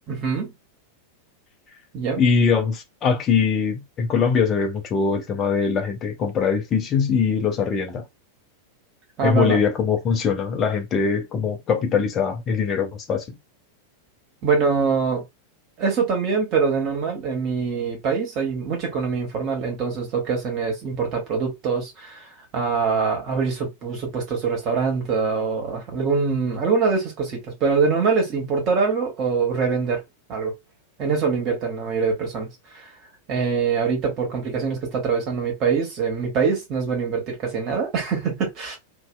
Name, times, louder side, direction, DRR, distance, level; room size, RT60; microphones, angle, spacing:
voice 1, 0.1-0.5 1.9-2.2 9.2-9.6 14.4-15.2 15.8-30.0 30.3-30.5 31.0-32.5 32.7-32.9 33.3-38.8, right 5 dB, 35° right, 1.2 m, -24 dB
voice 2, 2.2-8.0 9.2-13.4, left 6 dB, 30° left, 0.5 m, -22 dB
2.6 x 2.2 x 2.2 m
figure-of-eight pair, 90°, 0 cm